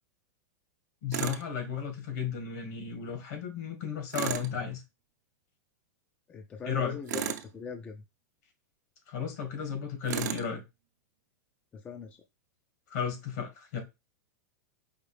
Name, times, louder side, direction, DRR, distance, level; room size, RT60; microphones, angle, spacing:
voice 1, 1.0-4.8 6.6-7.0 9.1-10.6 12.9-13.8, left 7 dB, 65° left, 1.8 m, -34 dB
Tools, 1.1-1.4 4.1-4.5 7.1-7.5 10.1-10.5, right 10 dB, 80° right, 0.7 m, -33 dB
voice 2, 6.3-8.0 11.7-12.2, left 6 dB, 15° left, 0.4 m, -41 dB
4.9 x 2.6 x 3.3 m
supercardioid pair, 160°, 9 cm